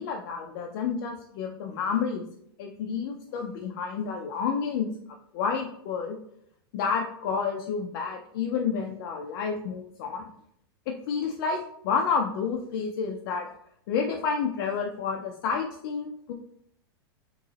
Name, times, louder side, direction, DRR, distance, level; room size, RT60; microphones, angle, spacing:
voice 1, 0.0-2.2 2.6-4.9 5.3-6.2 6.7-10.3 10.9-13.5 13.9-16.3, left 6 dB, 55° left, 2 dB, 0.5 m, -30 dB
3.8 x 3.0 x 3.9 m, 0.72 s
hypercardioid pair, 105°, 13 cm